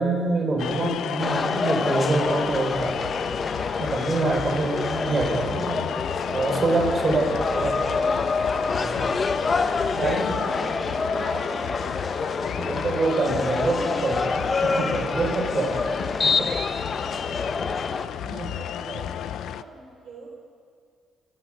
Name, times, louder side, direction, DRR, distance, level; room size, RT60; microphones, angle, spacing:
voice 1, 0.0-3.0 3.8-5.9 6.3-7.8 8.8-9.1 10.0-10.4 12.6-15.9 16.2-16.5 18.2-18.6, right 2 dB, 35° right, 1 dB, 5.7 m, -26 dB
sound 1, 0.6-19.6, left 10 dB, 75° left, 0.6 m, -33 dB
sound 2, 1.2-18.1, left 4 dB, 35° left, 1.1 m, -27 dB
voice 2, 4.8-5.9 6.1-8.3 9.7-12.0 17.5-20.3, right 3 dB, 60° right, -1 dB, 3.7 m, -40 dB
29.0 x 12.0 x 8.4 m, 2.1 s
cardioid pair, 90°, 0 cm